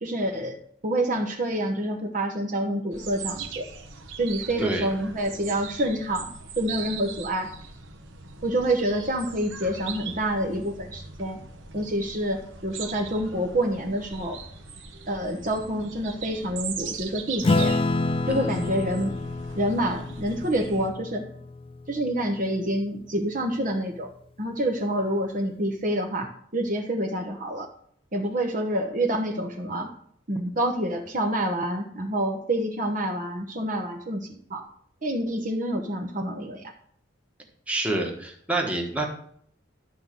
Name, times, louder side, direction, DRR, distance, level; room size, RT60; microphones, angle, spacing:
voice 1, 0.0-0.6 0.8-3.7 4.2-6.3 6.6-7.5 8.4-11.4 11.7-14.4 15.1-17.8 18.3-19.2 19.5-21.3 21.9-24.1 24.4-27.7 28.1-29.9 30.3-34.7 35.0-36.7, right 1 dB, 40° right, 2 dB, 1.0 m, -27 dB
sound 1, 2.9-20.9, right 6 dB, 70° right, 1.2 m, -40 dB
Acoustic guitar / Strum, 17.4-22.3, left 2 dB, 25° left, 0.3 m, -28 dB
voice 2, 18.3-18.6 37.7-39.1, right 2 dB, 5° right, 0 dB, 1.3 m, -28 dB
12.0 x 4.0 x 7.5 m, 0.63 s
head